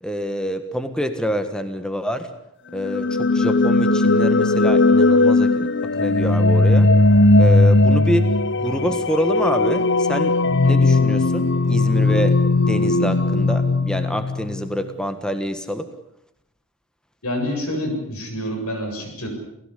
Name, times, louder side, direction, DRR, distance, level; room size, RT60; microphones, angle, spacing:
voice 1, 0.0-2.3 2.7-6.9 7.4-8.3 8.6-12.4 12.7-15.9, equal, 5° left, 9 dB, 1.5 m, -26 dB
sound 1, 2.8-14.7, left 2 dB, 55° left, 0.8 m, -17 dB
voice 2, 17.2-19.3, equal, 90° left, 4 dB, 7.7 m, -27 dB
28.5 x 17.0 x 8.4 m, 0.80 s
head